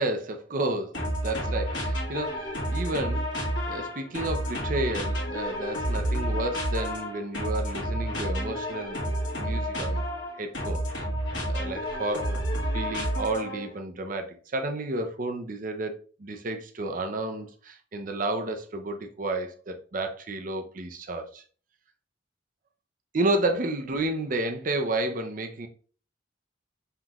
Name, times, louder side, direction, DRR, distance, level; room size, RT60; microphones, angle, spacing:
voice 1, 0.0-9.0 9.4-10.0 10.4-11.1 11.5-21.4 23.1-25.7, right 2 dB, 40° right, 0.5 m, -31 dB
sound 1, 0.9-13.7, equal, 65° left, 1.2 m, -30 dB
5.7 x 3.0 x 2.4 m
head